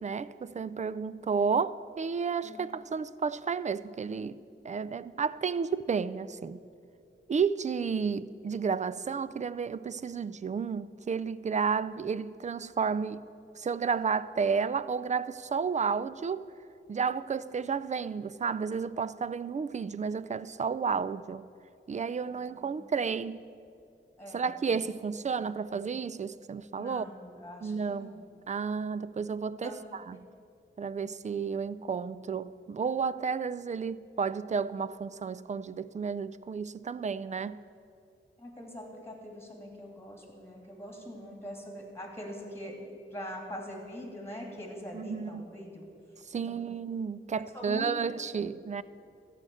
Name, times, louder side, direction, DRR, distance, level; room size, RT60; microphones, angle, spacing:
voice 1, 0.0-4.4 4.6-6.6 7.3-13.2 13.6-16.5 16.9-21.5 21.9-23.4 24.3-27.1 27.6-28.1 28.5-30.2 30.8-37.6 44.9-45.5 46.3-48.8, right 5 dB, 35° right, 0.3 m, -32 dB
voice 2, 22.3-22.8 24.2-25.9 26.7-28.3 29.6-29.8 38.4-45.9 46.5-46.6 47.5-47.9, equal, 10° left, 2.6 m, -43 dB
14.0 x 5.0 x 7.7 m
wide cardioid pair, 70°, 21 cm